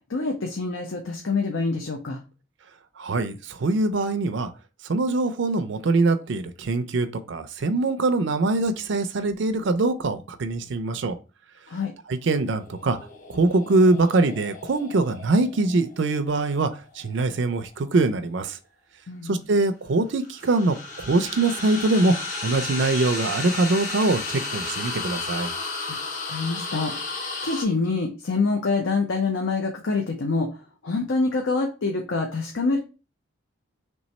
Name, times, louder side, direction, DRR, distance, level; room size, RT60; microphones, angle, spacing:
voice 1, 0.1-2.2 11.7-11.9 19.1-19.4 25.9-26.0 26.3-32.8, left 3 dB, 70° left, 0.6 m, -26 dB
voice 2, 3.0-4.5 4.8-11.2 12.1-13.0 13.3-18.6 19.2-22.1 22.4-25.5, right 2 dB, 60° right, 0.4 m, -23 dB
sound 1, 12.5-17.7 20.1-27.6, left 3 dB, 40° left, 0.9 m, -34 dB
3.3 x 3.1 x 4.0 m
head